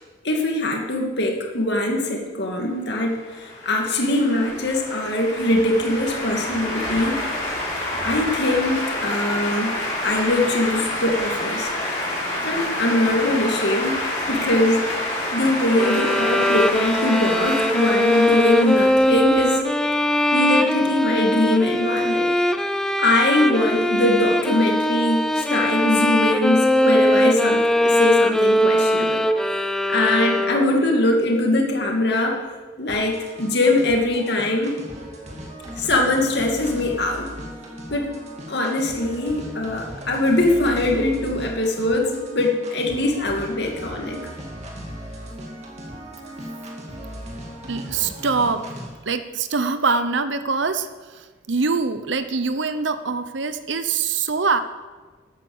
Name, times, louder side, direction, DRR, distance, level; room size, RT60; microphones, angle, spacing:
voice 1, 0.2-7.2 8.0-11.7 12.4-14.0 14.3-14.8 15.3-19.6 20.3-22.3 23.0-32.4 32.8-34.7 35.8-37.3 37.9-38.1 38.5-44.2, left 1 dB, 55° left, 1 dB, 2.4 m, -22 dB
sound 1, 3.0-19.7, left 1 dB, 30° left, 5.3 m, -28 dB
sound 2, 15.8-30.9, left 1 dB, 5° left, 0.4 m, -20 dB
sound 3, 32.9-48.9, equal, 35° right, 2.3 m, -37 dB
voice 2, 47.7-48.6 49.1-54.6, right 4 dB, 70° right, 11 dB, 0.8 m, -24 dB
12.5 x 9.0 x 7.3 m, 1.4 s
head